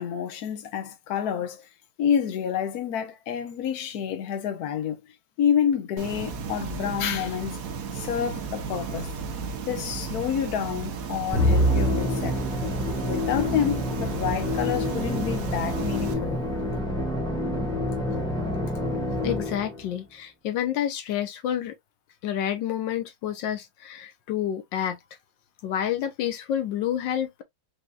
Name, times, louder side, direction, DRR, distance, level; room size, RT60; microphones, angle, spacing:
voice 1, 0.0-1.7 2.0-5.0 5.4-7.6 7.9-9.1 9.7-12.4 13.1-16.4, left 8 dB, 60° left, 1.3 m, -28 dB
sound 1, 6.0-16.1, right 5 dB, 60° right, 1.1 m, -34 dB
Musical instrument, 11.3-19.8, equal, 5° left, 1.2 m, -27 dB
voice 2, 19.2-21.7 22.2-25.0 25.6-27.4, left 10 dB, 80° left, 1.4 m, -29 dB
5.0 x 2.9 x 2.3 m
omnidirectional pair, 2.0 m